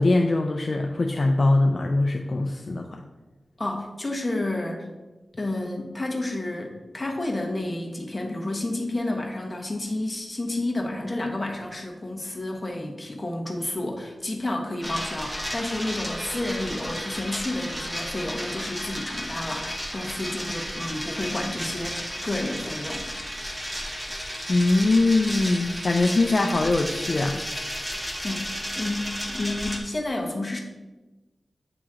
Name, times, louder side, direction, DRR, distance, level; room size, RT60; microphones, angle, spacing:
voice 1, 0.0-3.0 24.5-27.4, left 2 dB, 55° left, 2 dB, 0.4 m, -22 dB
voice 2, 3.6-4.9 5.4-23.1 28.2-28.5 28.7-30.6, left 2 dB, 25° left, 0 dB, 1.1 m, -30 dB
sound 1, 14.8-29.8, equal, 5° right, 1.1 m, -33 dB
8.8 x 3.1 x 3.6 m, 1.1 s
cardioid pair, 60°, 0 cm